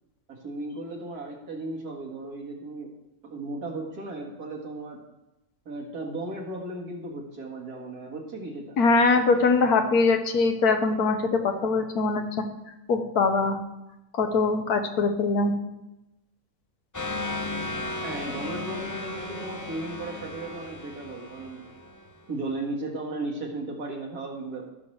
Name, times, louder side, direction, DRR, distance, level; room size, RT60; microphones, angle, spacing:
voice 1, 0.3-2.9 3.2-5.0 5.7-8.8 18.0-21.6 22.3-24.7, right 2 dB, 85° right, -1 dB, 2.3 m, -35 dB
voice 2, 8.8-12.2 12.9-13.6 14.1-15.5, left 4 dB, 85° left, 6 dB, 1.5 m, -22 dB
sound 1, 16.9-22.4, left 2 dB, 20° left, 0.5 m, -35 dB
16.5 x 6.3 x 3.3 m, 0.94 s
omnidirectional pair, 1.6 m